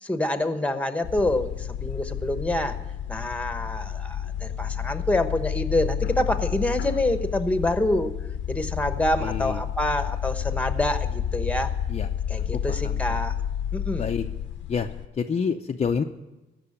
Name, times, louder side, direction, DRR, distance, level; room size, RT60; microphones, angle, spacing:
voice 1, 0.0-2.8 3.1-8.1 8.5-11.7 12.3-13.3 13.7-14.0, left 1 dB, 5° left, 9 dB, 1.1 m, -26 dB
sound 1, 1.0-15.1, left 9 dB, 70° left, 0.8 m, -30 dB
voice 2, 9.2-9.6 11.9-12.1 12.5-13.2 14.0-14.2 14.7-14.9 15.1-16.0, left 6 dB, 35° left, 4 dB, 0.6 m, -28 dB
15.0 x 6.2 x 8.7 m, 1.1 s
cardioid pair, 90°, 20 cm